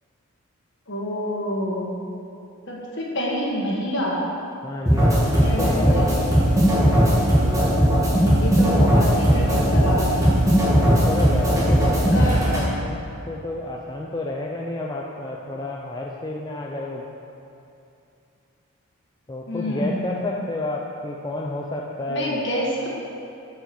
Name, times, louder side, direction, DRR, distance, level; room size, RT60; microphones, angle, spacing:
voice 1, 0.9-2.0 2.7-4.2 5.4-6.0 8.4-10.4 11.6-11.8 12.1-12.5 19.5-20.2 22.1-22.9, equal, 55° left, -3 dB, 1.5 m, -27 dB
voice 2, 4.6-6.5 7.4-7.7 10.8-17.0 19.3-22.4, left 2 dB, 20° left, -2 dB, 0.4 m, -31 dB
sound 1, 4.9-12.7, equal, 15° right, 1.7 m, -18 dB
7.3 x 4.9 x 6.9 m, 2.7 s
head